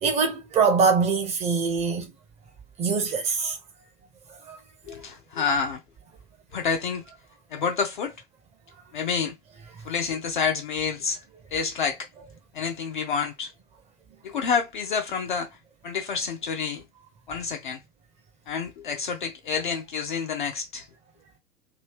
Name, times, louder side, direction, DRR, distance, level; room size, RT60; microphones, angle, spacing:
voice 1, 0.0-2.1 2.8-3.6 4.5-4.6, right 5 dB, 15° right, 0.6 m, -23 dB
voice 2, 4.9-5.8 6.5-7.0 7.5-8.2 8.9-9.4 9.8-11.2 11.5-12.1 12.5-13.5 14.2-15.6 15.8-16.8 17.3-17.8 18.5-20.9, left 6 dB, 35° left, 0.4 m, -28 dB
3.0 x 2.7 x 3.2 m
figure-of-eight pair, 100°, 47 cm